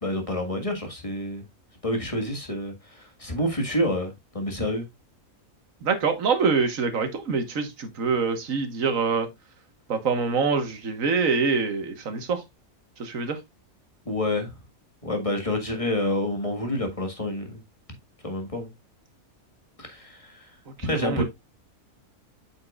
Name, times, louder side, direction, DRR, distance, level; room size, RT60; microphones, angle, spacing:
voice 1, 0.0-1.4 1.8-4.9 14.1-14.5 15.0-17.6 18.2-18.7 19.8-20.5 20.8-21.2, left 1 dB, 25° left, 1.7 m, -28 dB
voice 2, 5.8-9.3 9.9-12.4 13.0-13.4 20.9-21.2, right 5 dB, 65° right, 1.8 m, -25 dB
8.5 x 6.2 x 2.4 m
omnidirectional pair, 1.6 m